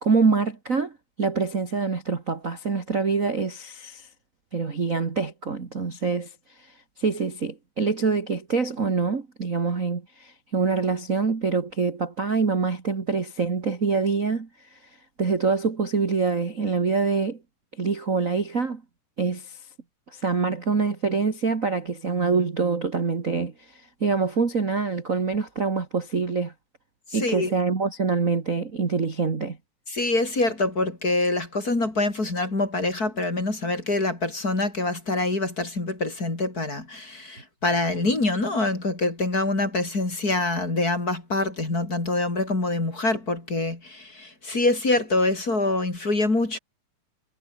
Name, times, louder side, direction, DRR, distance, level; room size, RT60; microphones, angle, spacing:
voice 1, 0.0-4.1 4.5-6.3 6.6-14.8 15.2-17.4 17.8-18.8 19.2-19.6 20.1-26.5 27.1-29.6, right 4 dB, 30° right, 2.0 m, -25 dB
voice 2, 27.1-27.5 29.9-46.6, left 2 dB, 25° left, 4.9 m, -25 dB
omnidirectional pair, 3.6 m